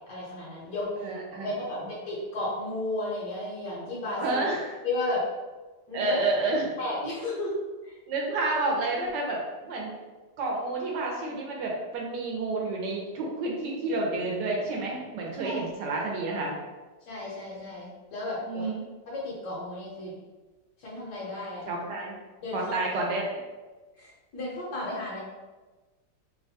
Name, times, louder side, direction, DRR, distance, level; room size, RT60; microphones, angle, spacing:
voice 1, 0.1-4.4 4.8-5.2 5.9-6.2 6.8-7.5 7.8-8.0 15.4-15.6 17.1-18.7 19.1-20.2 20.8-21.7 22.4-22.6 24.0-25.2, left 2 dB, 70° left, -7 dB, 1.3 m, -34 dB
voice 2, 1.0-1.5 4.2-4.7 5.9-6.7 8.1-9.9 10.4-16.6 18.5-18.8 21.7-22.1 22.5-23.3, right 2 dB, 75° right, -2 dB, 1.2 m, -29 dB
3.3 x 2.2 x 2.7 m, 1.2 s
omnidirectional pair, 1.9 m